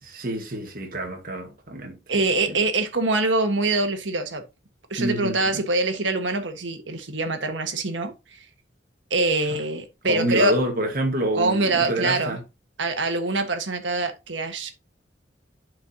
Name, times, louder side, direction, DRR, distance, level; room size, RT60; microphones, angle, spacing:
voice 1, 0.0-2.2 2.5-2.6 5.0-5.6 9.5-9.6 10.1-12.4, right 1 dB, 50° right, 1.6 m, -27 dB
voice 2, 2.1-4.4 4.9-8.4 9.1-10.6 11.3-12.4 12.8-14.7, right 2 dB, 90° right, 1.4 m, -24 dB
11.0 x 4.8 x 2.8 m
head